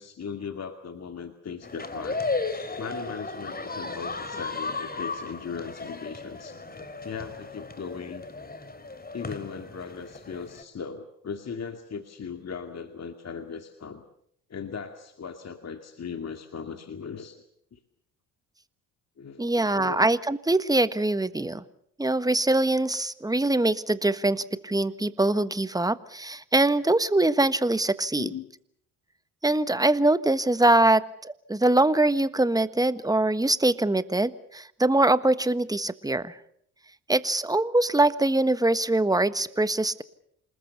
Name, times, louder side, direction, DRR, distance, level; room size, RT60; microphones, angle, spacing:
voice 1, 0.0-2.2 2.8-6.6 7.0-8.2 9.1-14.0 14.5-17.4 17.7-17.8 19.2-20.0 28.2-28.5, left 6 dB, 35° left, 6 dB, 2.3 m, -38 dB
sound 1, 1.6-10.6, left 3 dB, 20° left, 3.0 m, -35 dB
voice 2, 19.4-21.6 22.0-28.3 29.4-36.4 37.1-40.0, right 2 dB, 10° right, 14 dB, 1.4 m, -23 dB
27.5 x 20.5 x 6.9 m, 0.68 s
hypercardioid pair, 60°, 42 cm